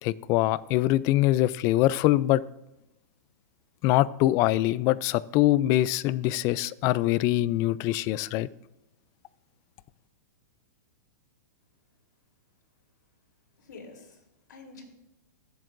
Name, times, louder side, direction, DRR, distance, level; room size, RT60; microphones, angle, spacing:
voice 1, 0.0-2.4 3.8-8.5, left 16 dB, 30° left, 0.3 m, -23 dB
voice 2, 13.6-14.8, left 3 dB, 80° left, 3.4 m, -48 dB
21.0 x 7.7 x 2.6 m
hypercardioid pair, 145°, 10 cm